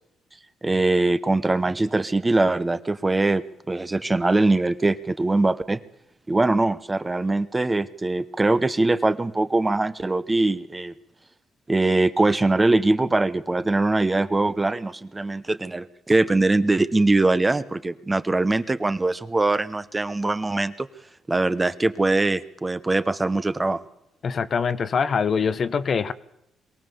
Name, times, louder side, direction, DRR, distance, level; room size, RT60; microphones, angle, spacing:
voice 1, 0.6-5.8 6.3-10.9 11.7-20.9 21.3-23.8, right 2 dB, 20° right, 12 dB, 0.9 m, -22 dB
voice 2, 24.2-26.1, left 6 dB, 45° left, 13 dB, 0.9 m, -23 dB
22.5 x 17.0 x 7.0 m, 0.82 s
cardioid pair, 90°, 0 cm